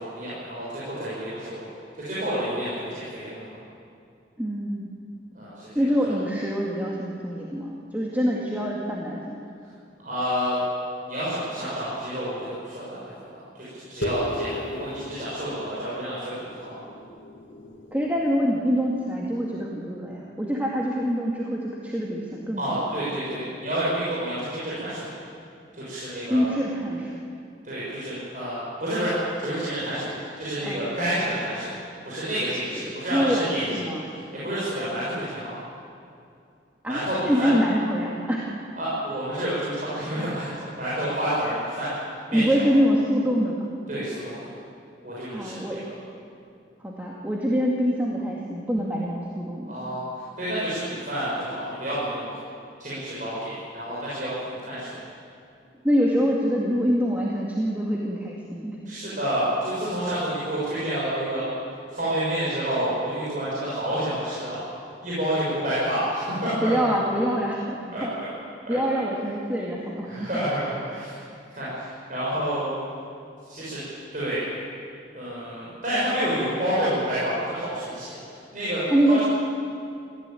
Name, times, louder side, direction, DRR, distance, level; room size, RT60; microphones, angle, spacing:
voice 1, 0.0-1.7 2.0-3.5 5.3-5.8 10.0-10.6 11.0-16.8 22.6-25.1 25.7-26.5 27.6-31.7 32.0-35.5 36.9-37.5 38.8-41.9 42.3-42.4 43.9-44.4 45.0-45.6 49.7-52.3 52.8-54.3 54.6-55.0 58.9-61.5 61.9-64.6 65.0-66.9 67.9-68.3 68.7-68.8 70.1-71.2 71.5-72.7 73.5-73.8 74.1-74.5 75.1-78.8 79.1-79.2, right 1 dB, 45° right, -9 dB, 6.6 m, -29 dB
voice 2, 4.4-4.9 5.7-9.4 17.9-22.9 26.3-27.2 30.6-30.8 33.1-34.1 36.8-38.5 42.3-43.6 45.3-45.8 46.8-49.7 55.8-58.8 66.6-68.1 68.7-70.3 78.9-79.2, equal, 10° right, -3 dB, 2.1 m, -25 dB
sound 1, 14.0-18.8, left 1 dB, 85° left, 2.4 m, -36 dB
23.5 x 16.0 x 9.2 m, 2.5 s
head